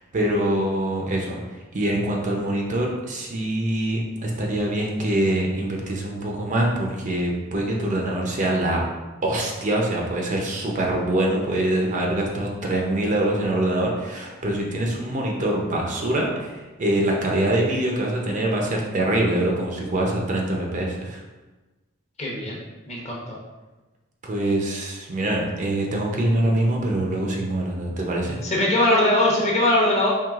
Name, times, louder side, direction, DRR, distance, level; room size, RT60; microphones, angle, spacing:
voice 1, 0.0-8.8 9.2-21.2 24.2-28.4, right 1 dB, 35° right, -1 dB, 0.5 m, -24 dB
voice 2, 22.2-23.4 28.4-30.1, left 1 dB, 30° left, -4 dB, 0.9 m, -21 dB
4.6 x 3.3 x 2.4 m, 1.2 s
head